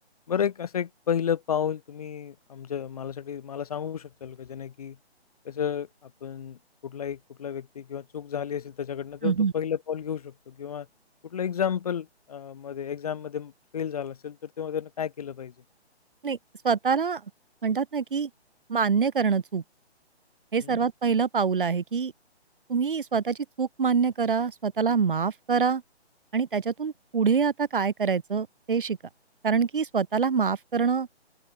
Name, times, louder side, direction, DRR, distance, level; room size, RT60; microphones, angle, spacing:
voice 1, 0.3-5.0 5.4-10.9 11.2-15.5 20.6-20.8, left 8 dB, 35° left, 6.4 m, -32 dB
voice 2, 16.6-17.2 17.6-18.3 18.7-19.6 20.5-22.1 22.7-25.8 26.3-29.0 29.4-31.1, right 6 dB, 50° right, 3.1 m, -25 dB
open air
hypercardioid pair, 170°, 33 cm